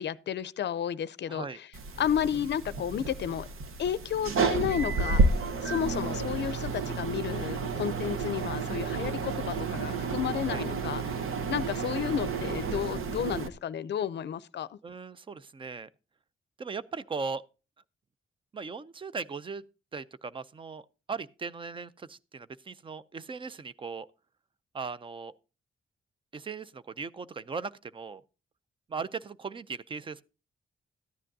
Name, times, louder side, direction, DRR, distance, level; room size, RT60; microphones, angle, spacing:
voice 1, 0.0-1.7 2.0-3.5 3.8-11.2 11.5-14.8, left 9 dB, 55° left, 0.5 m, -32 dB
voice 2, 1.3-1.6 10.5-10.6 14.8-15.9 16.6-17.4 18.5-19.6 19.9-20.8 21.1-24.1 24.7-25.3 26.3-28.2 28.9-30.2, right 5 dB, 25° right, 0.4 m, -38 dB
sound 1, 1.7-13.5, right 4 dB, 80° right, 1.0 m, -31 dB
13.5 x 10.0 x 2.6 m
wide cardioid pair, 160°, 21 cm